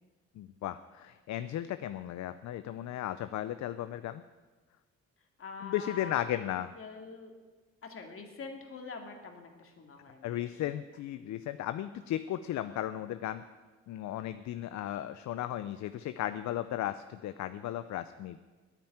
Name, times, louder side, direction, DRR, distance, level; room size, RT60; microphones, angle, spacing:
voice 1, 0.4-4.2 5.6-6.7 10.2-13.4 13.9-18.4, left 12 dB, 65° left, 12 dB, 0.6 m, -35 dB
voice 2, 5.4-6.5 6.8-7.3 7.8-10.4, left 4 dB, 45° left, 3 dB, 2.4 m, -45 dB
9.2 x 9.1 x 9.2 m, 1.3 s
cardioid pair, 90°, 30 cm